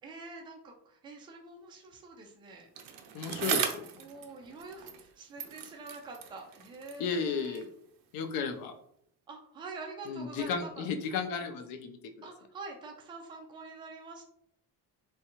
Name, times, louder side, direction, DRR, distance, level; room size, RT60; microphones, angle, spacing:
voice 1, 0.0-2.7 4.0-7.7 9.3-10.9 12.2-14.2, right 3 dB, 15° right, 2 dB, 0.3 m, -46 dB
Bicycle, 2.8-5.1 5.4-7.8 8.5-8.6, right 8 dB, 65° right, 0.5 m, -38 dB
voice 2, 3.1-3.8 7.0-7.7 8.1-8.7 10.1-12.3, left 5 dB, 70° left, 6 dB, 0.6 m, -34 dB
3.6 x 2.2 x 2.9 m, 0.70 s
cardioid pair, 165°, 36 cm